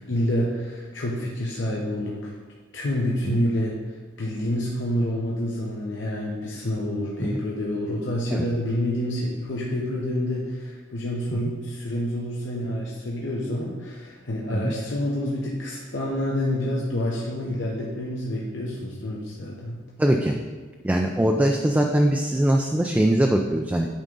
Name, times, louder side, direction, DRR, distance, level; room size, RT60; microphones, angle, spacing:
voice 1, 0.0-2.4 2.7-19.8, left 1 dB, 70° left, -4 dB, 0.9 m, -28 dB
voice 2, 20.0-20.3 20.8-23.9, right 1 dB, 10° right, 2 dB, 0.3 m, -21 dB
9.1 x 3.7 x 5.3 m, 1.4 s
head